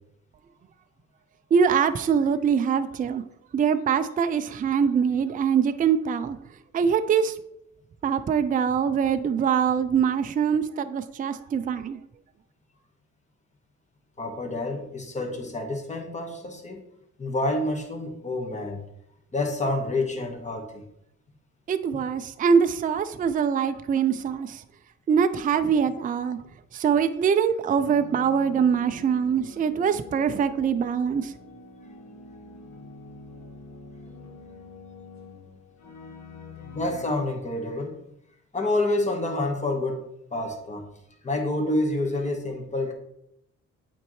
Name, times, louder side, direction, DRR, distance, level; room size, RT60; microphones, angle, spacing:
voice 1, 1.5-3.2 3.5-6.4 6.7-7.4 8.0-12.0 21.7-24.6 25.1-26.4 26.7-31.3, right 7 dB, 30° right, 10 dB, 0.4 m, -23 dB
voice 2, 14.2-16.8 17.2-18.8 19.3-20.8 36.7-38.0 38.5-40.9 41.2-42.9, left 2 dB, 25° left, 2 dB, 1.3 m, -28 dB
sound 1, 27.9-37.1, left 3 dB, 65° left, 1.2 m, -45 dB
8.4 x 4.4 x 3.1 m, 0.79 s
cardioid pair, 90°, 30 cm